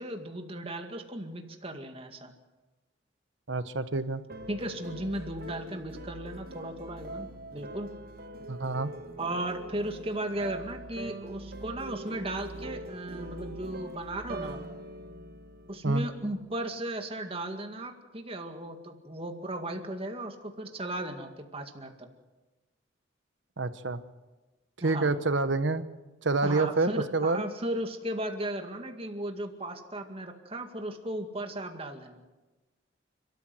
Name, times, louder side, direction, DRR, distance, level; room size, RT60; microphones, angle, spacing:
voice 1, 0.0-2.3 4.5-7.9 9.2-14.6 15.7-22.1 24.8-25.1 26.4-32.2, right 1 dB, 30° right, 5 dB, 2.1 m, -36 dB
voice 2, 3.5-4.2 8.5-8.9 15.8-16.1 23.6-24.0 24.8-25.8 26.2-27.4, right 3 dB, 70° right, 12 dB, 1.1 m, -27 dB
sound 1, 4.3-16.4, right 1 dB, 50° right, 1.5 m, -43 dB
29.5 x 13.5 x 7.8 m, 1.2 s
head